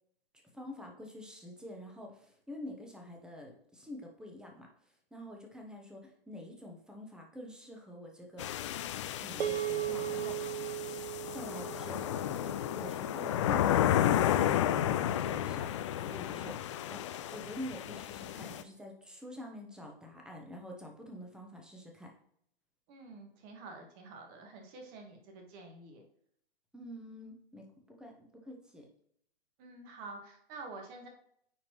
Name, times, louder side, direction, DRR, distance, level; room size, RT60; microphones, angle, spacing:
voice 1, 0.5-4.7 5.1-8.5 9.2-10.4 11.3-12.1 12.7-15.7 16.0-17.0 17.3-22.1 26.7-28.9, left 1 dB, ahead, 1 dB, 1.0 m, -47 dB
sound 1, 8.4-18.6, left 11 dB, 30° left, 0.4 m, -32 dB
sound 2, 9.4-13.9, right 14 dB, 75° right, 0.6 m, -38 dB
voice 2, 22.9-26.0 29.6-31.1, right 3 dB, 30° right, 3 dB, 1.7 m, -48 dB
9.5 x 4.3 x 3.1 m, 0.68 s
figure-of-eight pair, 120°, 30 cm